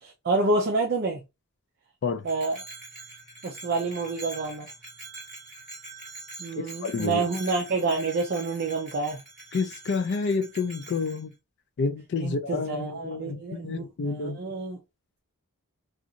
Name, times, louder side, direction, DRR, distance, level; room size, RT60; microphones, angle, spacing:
voice 1, 0.0-1.2 2.2-2.6 3.4-4.7 6.4-9.2 12.2-14.8, right 3 dB, 45° right, 0.5 m, -28 dB
Bell, 2.2-11.2, right 3 dB, ahead, 1.6 m, -44 dB
voice 2, 6.6-7.2 9.5-11.3 11.8-14.4, left 4 dB, 50° left, 0.4 m, -29 dB
2.5 x 2.4 x 2.7 m
head